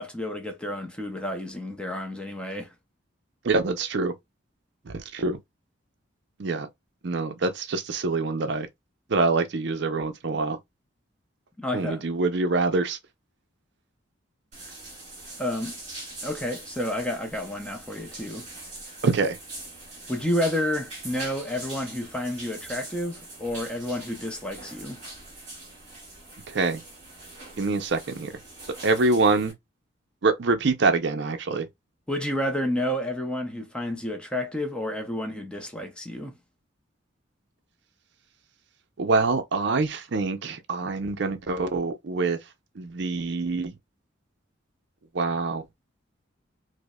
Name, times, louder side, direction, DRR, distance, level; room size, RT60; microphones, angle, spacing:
voice 1, 0.0-2.7 11.6-12.0 15.4-15.7 16.2-18.5 20.1-25.0 32.1-36.3, left 1 dB, 5° left, 0.5 m, -30 dB
voice 2, 3.4-4.1 4.9-5.4 6.4-6.7 7.0-8.7 9.1-10.6 11.7-13.0 19.0-19.4 26.5-26.8 27.6-28.3 28.8-29.5 30.2-31.7 39.0-42.4 42.8-43.7 45.1-45.6, right 3 dB, 60° right, 0.5 m, -25 dB
sound 1, 14.5-29.5, right 2 dB, 40° right, 2.3 m, -43 dB
5.0 x 2.0 x 2.2 m
head